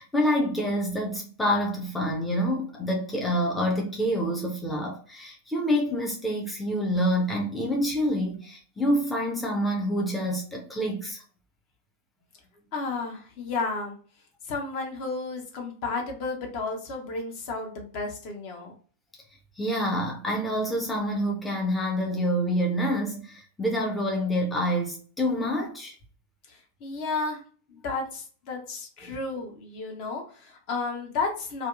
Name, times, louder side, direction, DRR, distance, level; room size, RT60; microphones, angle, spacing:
voice 1, 0.0-11.2 19.6-25.9 29.0-29.1, equal, 10° left, 0.5 m, -27 dB
voice 2, 12.7-14.0 14.5-18.7 26.5-27.4 27.7-31.7, left 3 dB, 45° left, 0.8 m, -32 dB
2.7 x 2.2 x 2.4 m
figure-of-eight pair, 90°, 0 cm